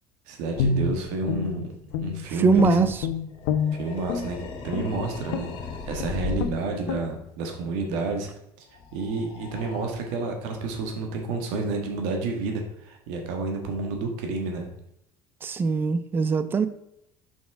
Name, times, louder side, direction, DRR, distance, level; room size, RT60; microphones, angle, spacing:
voice 1, 0.3-1.7 2.0-2.9 3.8-8.3 8.6-8.7 8.9-14.6, right 3 dB, 85° right, 3 dB, 1.7 m, -30 dB
Guitar, 0.6-2.3 2.6-4.3 4.7-4.9 5.3-5.6 6.0-6.1 6.4-6.6 6.9-7.1, left 5 dB, 85° left, 1.0 m, -27 dB
voice 2, 2.4-3.1 15.4-16.7, right 5 dB, 20° right, 12 dB, 0.5 m, -22 dB
sound 1, 3.3-6.6 8.7-9.9, left 4 dB, 50° left, 2.0 m, -36 dB
6.4 x 5.9 x 4.8 m, 0.79 s
cardioid pair, 145°, 10 cm